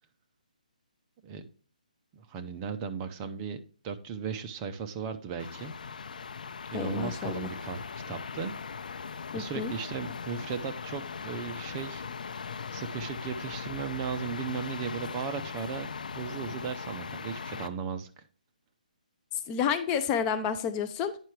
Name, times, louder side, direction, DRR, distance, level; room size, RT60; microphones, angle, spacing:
voice 1, 2.1-5.7 6.7-7.8 8.1-8.5 9.3-12.0 12.5-15.9 16.1-18.2, right 6 dB, 20° right, 7 dB, 0.7 m, -36 dB
sound 1, 5.4-17.7, left 5 dB, 70° left, 0.6 m, -39 dB
voice 2, 6.7-7.5 9.3-9.7 19.5-21.2, left 7 dB, 20° left, 9 dB, 0.5 m, -30 dB
9.2 x 5.6 x 3.2 m, 0.40 s
hypercardioid pair, 160°, 5 cm